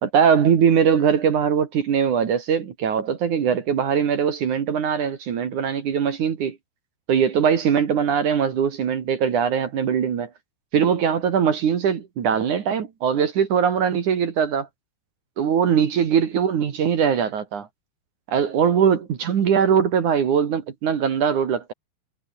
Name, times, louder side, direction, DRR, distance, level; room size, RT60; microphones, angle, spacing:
voice 1, 0.0-6.6 7.1-10.3 10.7-14.7 15.4-17.7 18.3-21.7, right 7 dB, 50° right, 3.0 m, -21 dB
omnidirectional pair, 5.1 m